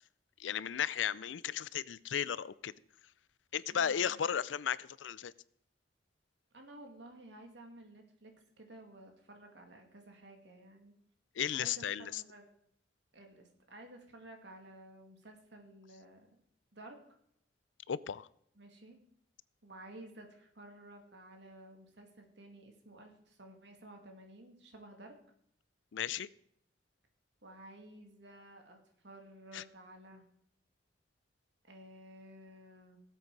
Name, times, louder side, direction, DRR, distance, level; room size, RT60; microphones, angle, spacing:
voice 1, 0.4-2.7 3.5-5.3 11.4-12.2 17.9-18.3 25.9-26.3 29.5-29.6, left 8 dB, 85° left, 0.5 m, -35 dB
voice 2, 3.7-4.3 6.5-11.0 11.5-12.5 13.1-16.4 16.7-17.0 18.6-19.0 19.6-25.1 27.4-28.8 29.0-30.2 31.6-33.0, right 1 dB, 70° right, 2.3 m, -53 dB
17.5 x 7.8 x 4.7 m
head